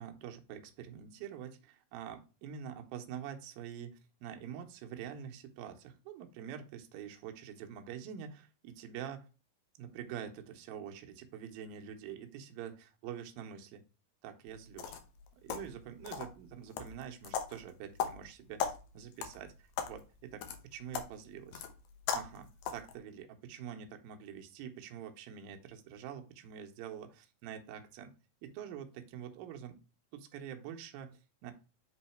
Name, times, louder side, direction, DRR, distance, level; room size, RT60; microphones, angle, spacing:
voice 1, 0.0-9.3 9.8-13.8 14.2-15.0 15.4-19.5 19.9-21.7 22.1-28.1 28.4-29.8 30.1-31.5, right 9 dB, 75° right, 4 dB, 2.6 m, -46 dB
sound 1, 14.5-23.0, left 7 dB, 70° left, 2.4 m, -40 dB
7.9 x 3.9 x 4.4 m, 0.32 s
omnidirectional pair, 4.5 m